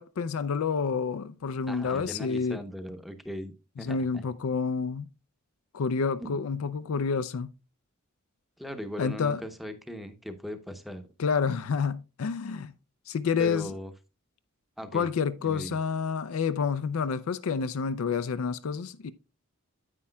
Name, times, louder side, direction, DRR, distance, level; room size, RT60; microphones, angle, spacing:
voice 1, 0.0-2.6 3.8-5.0 5.7-7.5 9.0-9.4 11.2-12.7 13.1-13.7 14.9-19.1, left 5 dB, 85° left, 0.4 m, -29 dB
voice 2, 1.7-4.2 6.2-6.4 8.6-11.0 13.4-13.9 14.8-15.1 15.4-15.8, equal, ahead, 0.8 m, -39 dB
9.7 x 8.6 x 2.2 m
head